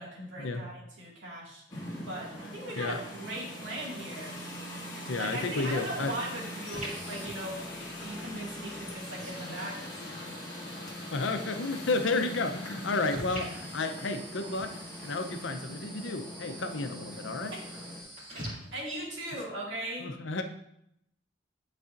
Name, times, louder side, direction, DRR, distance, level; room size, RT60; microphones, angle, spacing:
voice 1, 0.0-1.6 2.1-4.4 5.2-7.6 8.0-9.7 10.0-10.4 18.7-20.1, right 1 dB, 85° right, -3 dB, 2.0 m, -39 dB
sound 1, 1.7-18.0, left 1 dB, 20° left, 1.6 m, -42 dB
voice 2, 5.1-6.1 9.6-9.7 11.1-14.8 15.0-17.6 20.0-20.4, left 3 dB, 80° left, 7 dB, 0.6 m, -32 dB
sound 2, 5.3-19.3, right 1 dB, 40° right, 2.2 m, -46 dB
10.5 x 4.2 x 2.5 m, 0.76 s
head